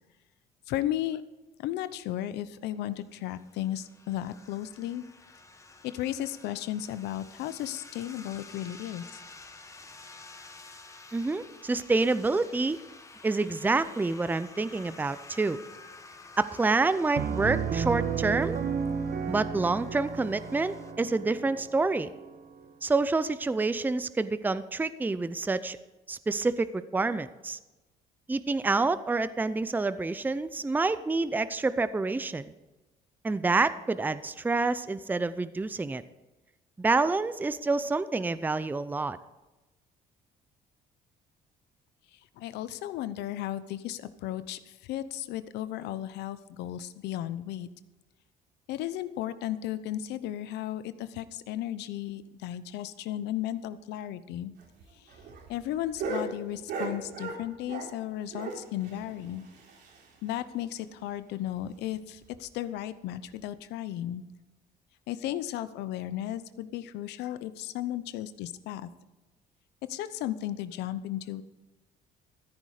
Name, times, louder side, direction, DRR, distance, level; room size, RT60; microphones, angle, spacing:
voice 1, 0.7-1.2 1.6-5.0 5.8-9.2 42.1-47.7 48.7-54.5 55.0-55.1 55.5-59.4 60.2-64.2 65.1-68.9 69.9-71.4, left 12 dB, 85° left, 14 dB, 0.8 m, -35 dB
sound 1, 3.0-20.9, left 3 dB, 20° left, 1.2 m, -51 dB
voice 2, 11.1-12.8 13.2-15.6 16.4-18.6 19.3-22.1 22.8-25.8 26.1-27.6 28.3-32.5 33.2-36.0 36.8-39.2, right 3 dB, 10° right, 14 dB, 0.5 m, -28 dB
Piano, 17.2-22.7, right 7 dB, 55° right, 1.2 m, -33 dB
sound 2, 54.6-58.0 58.3-60.3 60.6-60.7 61.0-61.1 61.5-61.6 62.2-62.4 63.3-63.4, right 3 dB, 80° right, 3.6 m, -38 dB
14.5 x 9.5 x 5.0 m, 1.1 s
cardioid pair, 110°, 17 cm